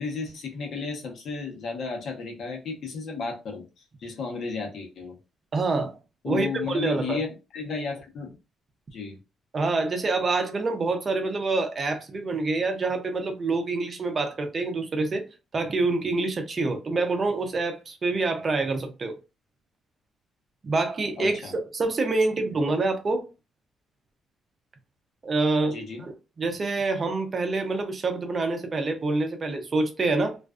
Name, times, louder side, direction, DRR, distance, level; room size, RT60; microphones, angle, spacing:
voice 1, 0.0-3.6 4.0-5.2 6.2-7.3 7.5-8.3 8.9-9.2 21.2-21.5 25.7-26.0, left 4 dB, 65° left, 0.9 m, -33 dB
voice 2, 5.5-6.0 6.2-7.2 9.5-15.2 15.5-19.1 20.6-23.3 25.2-30.4, right 3 dB, 40° right, 0.6 m, -26 dB
2.4 x 2.3 x 2.3 m
cardioid pair, 90°, 0 cm